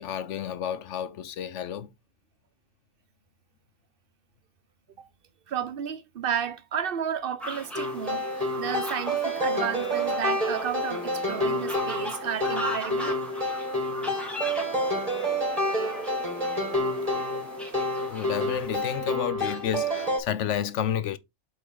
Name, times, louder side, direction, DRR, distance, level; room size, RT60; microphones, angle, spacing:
voice 1, 0.0-1.9 18.1-21.2, left 9 dB, 80° left, 1.0 m, -31 dB
voice 2, 5.5-13.2, right 8 dB, 55° right, 0.9 m, -32 dB
sound 1, 7.4-19.0, equal, ahead, 2.2 m, -39 dB
sound 2, 7.8-20.2, equal, 30° right, 2.6 m, -29 dB
8.1 x 3.8 x 3.8 m
omnidirectional pair, 1.2 m